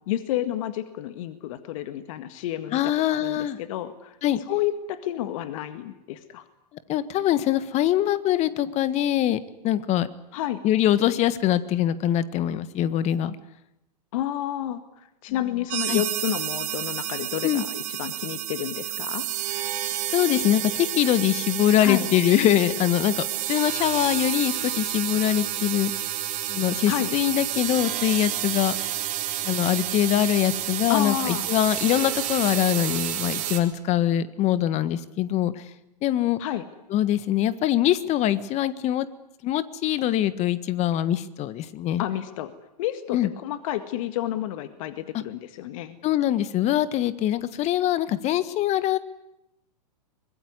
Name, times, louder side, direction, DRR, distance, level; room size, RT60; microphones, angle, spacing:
voice 1, 0.0-4.2 4.5-6.4 10.3-10.6 14.1-19.3 21.8-22.1 26.9-27.1 30.9-31.5 36.4-36.6 42.0-42.5 42.8-46.0, left 12 dB, 50° left, 10 dB, 1.8 m, -30 dB
voice 2, 2.7-3.6 4.2-4.4 6.9-9.4 9.6-10.1 10.6-13.3 15.9-16.0 17.4-17.6 20.1-25.9 26.5-28.9 29.4-35.6 36.0-36.4 36.9-39.1 39.4-42.0 43.1-43.3 45.1-45.2 46.0-49.0, left 12 dB, 30° left, 15 dB, 1.5 m, -23 dB
sound 1, 15.7-33.6, right 13 dB, 40° right, 4.6 m, -30 dB
24.5 x 21.5 x 9.7 m, 0.87 s
hypercardioid pair, 110°, 21 cm